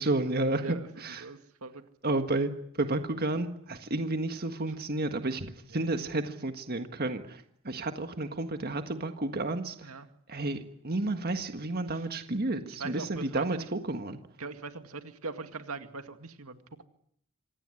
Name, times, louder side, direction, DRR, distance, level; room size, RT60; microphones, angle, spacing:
voice 1, 0.0-1.3 2.0-2.5 2.8-5.5 5.7-9.7 10.3-10.6 10.8-14.2, right 2 dB, 45° right, 7 dB, 1.6 m, -31 dB
voice 2, 0.6-1.8 5.7-5.9 9.8-10.1 11.9-12.0 12.7-13.7 14.4-16.8, right 3 dB, 85° right, 8 dB, 2.1 m, -41 dB
26.0 x 18.5 x 9.8 m, 0.70 s
head